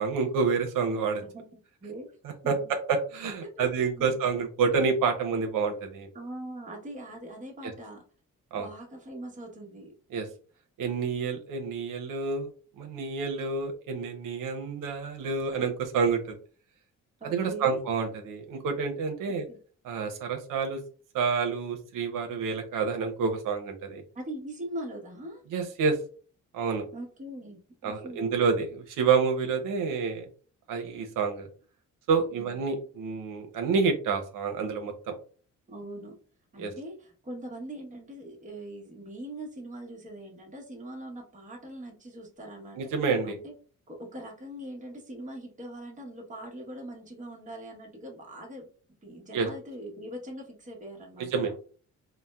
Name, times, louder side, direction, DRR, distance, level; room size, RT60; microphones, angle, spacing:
voice 1, 0.0-1.2 2.5-6.1 7.6-7.7 8.5-8.7 10.1-10.3 10.8-12.5 12.8-16.4 17.2-19.5 19.8-20.8 21.1-24.0 25.5-26.0 26.5-26.9 27.8-30.3 30.7-31.5 32.1-35.1 36.6-36.7 42.8-43.4 49.3-49.5 51.2-51.5, right 5 dB, 90° right, 5 dB, 0.6 m, -28 dB
voice 2, 1.2-2.1 2.4-2.7 3.5-3.7 3.9-4.1 6.1-8.0 8.5-9.9 17.2-17.8 19.5-19.6 24.1-25.4 26.9-28.3 35.7-36.2 36.5-42.8 43.2-43.5 43.9-48.7 49.0-51.6, right 1 dB, 25° right, -1 dB, 0.9 m, -41 dB
4.0 x 2.0 x 2.2 m, 0.40 s
cardioid pair, 130°, 31 cm